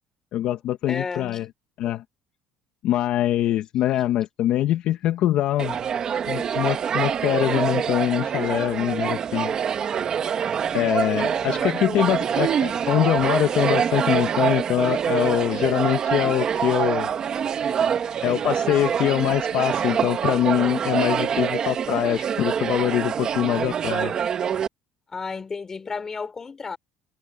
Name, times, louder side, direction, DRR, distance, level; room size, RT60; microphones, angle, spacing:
voice 1, 0.3-1.4 1.8-2.0 2.8-5.8 6.3-9.5 10.7-17.1 18.2-24.1, left 13 dB, 60° left, 1.4 m, -23 dB
voice 2, 0.9-1.5 1.8-1.9 11.3-11.9 25.1-26.8, left 5 dB, 25° left, 3.5 m, -33 dB
sound 1, 5.6-24.7, right 8 dB, 40° right, 1.7 m, -25 dB
cardioid pair, 130°, 2 cm